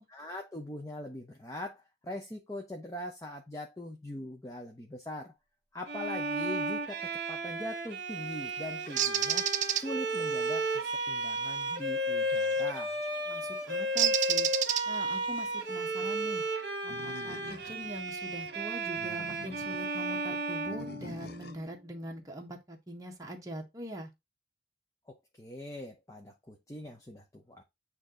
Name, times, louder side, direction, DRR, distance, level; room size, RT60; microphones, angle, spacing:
voice 1, 0.0-5.3 5.7-9.4 9.7-13.0 25.1-27.6, left 1 dB, 15° left, 0.7 m, -42 dB
Bowed string instrument, 5.9-21.6, right 1 dB, 55° right, 1.3 m, -33 dB
Bird, 9.0-9.8 12.4-12.7 14.0-15.2, right 11 dB, 40° right, 0.4 m, -28 dB
voice 2, 13.3-14.5 14.8-16.4 16.8-24.1, equal, 20° right, 1.3 m, -43 dB
Animal, 16.9-18.0 18.8-19.9 20.7-21.7, left 2 dB, 55° left, 0.7 m, -46 dB
8.6 x 2.9 x 3.8 m
head